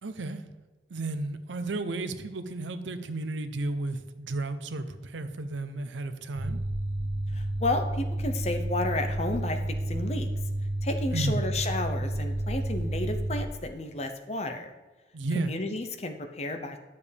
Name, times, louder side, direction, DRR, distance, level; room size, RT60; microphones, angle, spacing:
voice 1, 0.0-0.4 0.9-6.6 11.1-11.4 15.1-15.5, right 2 dB, 85° right, 0.6 m, -33 dB
sound 1, 6.3-13.4, right 1 dB, 45° right, 1.0 m, -31 dB
voice 2, 7.3-9.6 9.9-10.3 10.8-14.7 15.3-16.8, left 2 dB, 35° left, 0.7 m, -32 dB
10.5 x 6.8 x 3.4 m
head